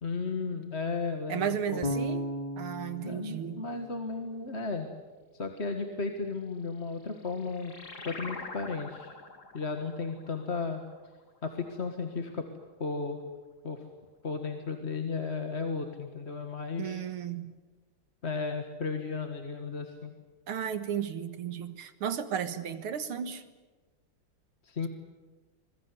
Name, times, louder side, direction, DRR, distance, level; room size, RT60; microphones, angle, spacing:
voice 1, 0.0-1.8 3.0-4.9 5.3-7.7 8.0-9.2 9.5-10.8 11.4-12.5 12.8-13.2 13.6-13.9 14.2-17.0 18.2-20.1 24.6-24.9, left 4 dB, 35° left, 5 dB, 1.8 m, -34 dB
voice 2, 1.3-2.2 2.6-3.7 16.8-17.5 20.5-23.4, right 8 dB, 90° right, 11 dB, 2.4 m, -34 dB
Bass guitar, 1.8-4.8, equal, 20° left, 2.6 m, -36 dB
sound 1, 6.8-11.8, left 3 dB, 50° left, 3.5 m, -46 dB
25.5 x 21.5 x 9.8 m, 1.2 s
omnidirectional pair, 2.3 m